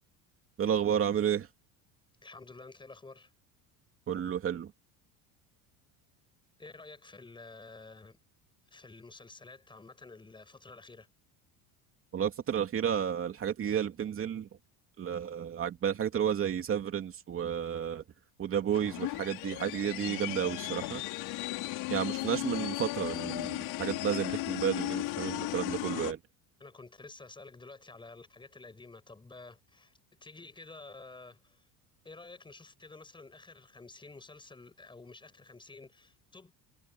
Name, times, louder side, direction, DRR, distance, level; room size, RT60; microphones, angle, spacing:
voice 1, 0.6-1.5 4.1-4.7 12.1-14.5 15.0-18.0 18.4-21.0 21.9-26.2, right 9 dB, 35° right, 2.7 m, -31 dB
voice 2, 2.2-3.3 6.6-8.2 8.7-11.1 26.6-29.9 30.2-31.6 32.0-36.5, left 3 dB, 10° left, 7.3 m, -50 dB
sound 1, 18.7-26.1, left 20 dB, 65° left, 6.1 m, -36 dB
cardioid pair, 145°, 40 cm